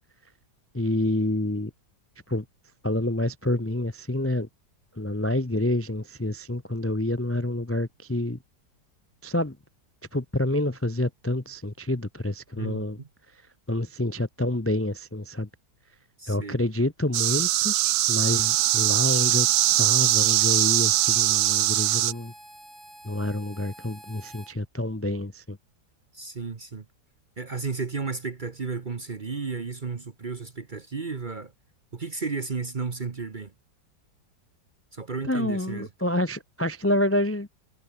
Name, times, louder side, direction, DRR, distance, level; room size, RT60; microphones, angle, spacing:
voice 1, 0.7-1.7 2.3-2.4 2.8-4.5 5.0-8.4 9.2-9.6 10.1-13.0 13.7-15.5 16.3-17.7 18.1-19.5 19.8-22.3 23.0-25.6 35.2-37.5, left 1 dB, 15° left, 0.5 m, -28 dB
voice 2, 12.6-13.1 16.2-16.6 26.1-26.9 27.4-31.5 31.9-33.5 34.9-35.9, right 4 dB, 35° right, 0.9 m, -33 dB
sound 1, 17.1-22.1, right 14 dB, 70° right, 1.1 m, -22 dB
Harmonica, 18.2-24.5, right 1 dB, 10° right, 6.8 m, -48 dB
omnidirectional pair, 1.9 m